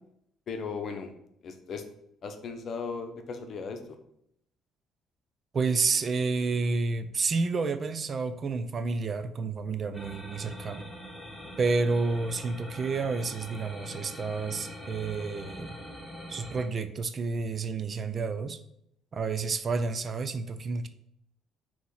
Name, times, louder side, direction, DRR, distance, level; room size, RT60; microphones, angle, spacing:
voice 1, 0.5-1.1 1.4-1.8 2.2-3.8, left 5 dB, 50° left, 7 dB, 0.8 m, -36 dB
voice 2, 5.5-10.9 11.6-15.8 16.3-18.6 19.1-20.9, right 4 dB, 40° right, 11 dB, 0.5 m, -30 dB
sound 1, 9.9-16.6, equal, ahead, 1.5 m, -43 dB
6.1 x 3.0 x 5.6 m, 0.76 s
cardioid pair, 95°, 0 cm